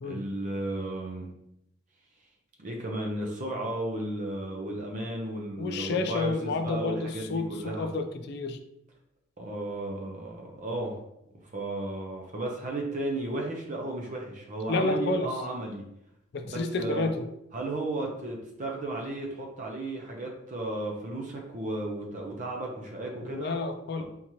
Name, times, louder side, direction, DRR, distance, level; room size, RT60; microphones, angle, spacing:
voice 1, 0.0-1.3 2.6-7.9 9.4-11.0 11.5-15.8 16.4-17.1 17.5-23.6, right 1 dB, 40° right, 0 dB, 0.5 m, -34 dB
voice 2, 5.6-8.6 14.7-15.3 16.3-17.2 23.2-24.0, left 3 dB, 55° left, 7 dB, 0.4 m, -30 dB
3.6 x 2.8 x 3.0 m, 0.79 s
head